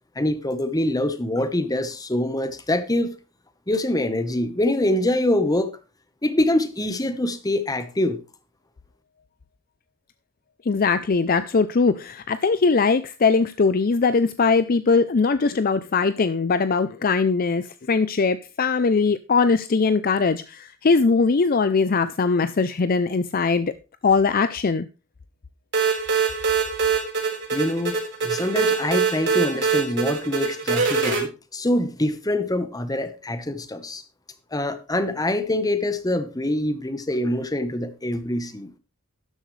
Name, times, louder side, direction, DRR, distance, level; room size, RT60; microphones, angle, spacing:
voice 1, 0.1-3.1 3.7-5.8 6.2-8.2 27.5-34.0 34.5-38.7, left 1 dB, 15° left, 1.1 m, -24 dB
voice 2, 10.7-23.7 24.0-24.9, left 4 dB, 40° left, 0.5 m, -21 dB
sound 1, 25.7-31.2, right 5 dB, 55° right, 4.2 m, -23 dB
13.0 x 10.5 x 3.3 m
head